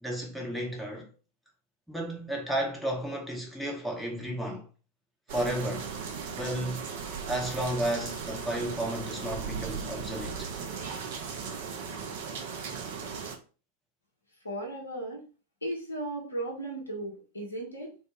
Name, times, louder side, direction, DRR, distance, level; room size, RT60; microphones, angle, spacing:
voice 1, 0.0-1.1 1.9-4.7 5.3-5.9 6.4-6.8 7.3-10.5, right 1 dB, ahead, 0.7 m, -33 dB
sound 1, 5.3-13.4, right 6 dB, 50° right, 0.5 m, -37 dB
voice 2, 14.4-15.2 15.6-17.9, right 1 dB, 80° left, 0.8 m, -36 dB
2.5 x 2.0 x 3.1 m
figure-of-eight pair, 90°, 0 cm